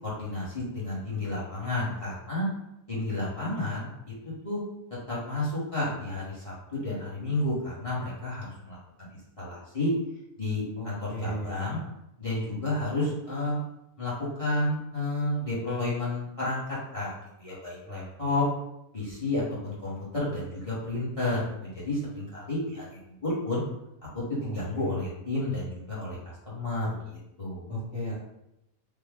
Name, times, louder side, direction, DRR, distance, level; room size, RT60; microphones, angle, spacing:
voice 1, 0.0-2.5 2.9-4.1 4.4-4.6 5.1-9.1 9.4-9.9 10.4-11.8 12.2-13.6 14.0-14.1 14.4-18.5 18.9-23.6 24.1-27.7, left 2 dB, 30° left, -8 dB, 0.9 m, -31 dB
voice 2, 10.8-11.8 17.8-18.1 24.4-25.0 27.7-28.2, equal, 10° right, -7 dB, 0.5 m, -36 dB
3.3 x 2.1 x 3.5 m, 0.84 s
omnidirectional pair, 1.5 m